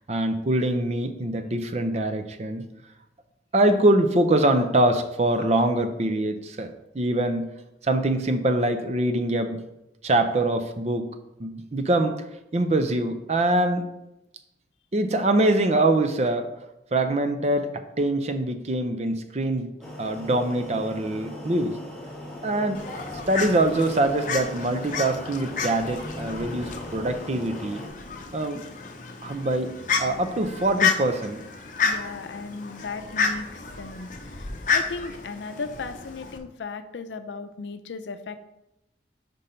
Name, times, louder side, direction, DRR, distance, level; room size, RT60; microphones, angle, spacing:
voice 1, 0.1-2.7 3.5-7.5 7.8-9.6 10.0-12.2 12.5-13.9 14.9-16.5 16.9-21.8 22.4-22.8 23.3-27.8 28.3-28.6 29.2-29.7 30.0-31.4, right 1 dB, 40° right, 8 dB, 0.5 m, -24 dB
sound 1, 19.8-27.9, left 1 dB, 5° left, 1.2 m, -39 dB
Fowl, 22.7-36.4, left 5 dB, 45° left, 0.6 m, -31 dB
voice 2, 31.8-38.4, left 4 dB, 85° left, 9 dB, 0.5 m, -36 dB
5.3 x 5.2 x 4.3 m, 0.89 s
head